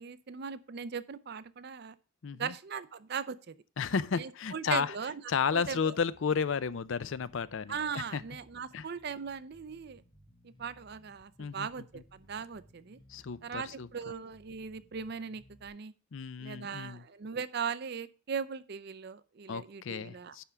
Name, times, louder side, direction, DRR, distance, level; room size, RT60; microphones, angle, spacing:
voice 1, 0.0-1.9 2.3-3.6 4.2-5.2 5.5-6.0 7.7-10.0 10.4-13.0 13.4-15.9 16.4-20.4, right 6 dB, 50° right, 0.5 m, -39 dB
voice 2, 2.2-2.5 3.8-4.9 5.3-7.8 8.1-8.2 8.7-8.9 11.4-11.7 13.1-13.9 16.1-17.0 19.5-20.4, left 6 dB, 65° left, 0.5 m, -32 dB
Bass guitar, 7.3-15.7, equal, 20° left, 1.3 m, -62 dB
10.0 x 3.6 x 6.8 m
head